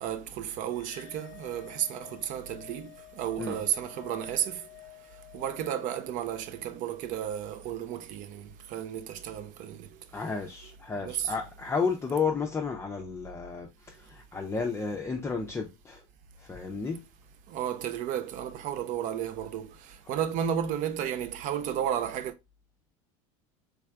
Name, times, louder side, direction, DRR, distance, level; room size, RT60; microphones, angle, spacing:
voice 1, 0.0-2.9 3.2-4.6 5.3-9.9 11.0-11.3 17.5-19.7 20.1-22.3, right 9 dB, 55° right, 0.5 m, -33 dB
sound 1, 0.7-7.3, left 16 dB, 85° left, 0.5 m, -51 dB
voice 2, 10.1-16.0 16.4-17.0 20.0-20.2, left 5 dB, 15° left, 0.5 m, -32 dB
3.3 x 3.3 x 2.3 m
supercardioid pair, 100°, 16 cm